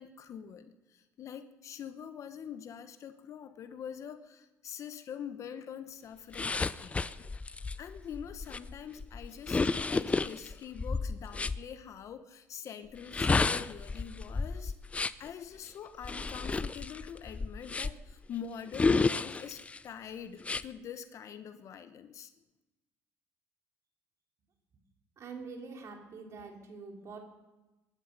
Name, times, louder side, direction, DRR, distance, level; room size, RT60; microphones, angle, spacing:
voice 1, 0.0-7.3 7.8-14.7 15.2-22.3, left 8 dB, 55° left, 10 dB, 1.0 m, -44 dB
sound 1, 6.3-11.6 12.9-15.3 16.0-18.1 18.7-19.8 20.4-20.6, left 4 dB, 20° left, 0.5 m, -31 dB
voice 2, 25.2-27.2, right 4 dB, 55° right, 2 dB, 3.4 m, -45 dB
23.0 x 11.0 x 5.4 m, 1.1 s
cardioid pair, 90°, 6 cm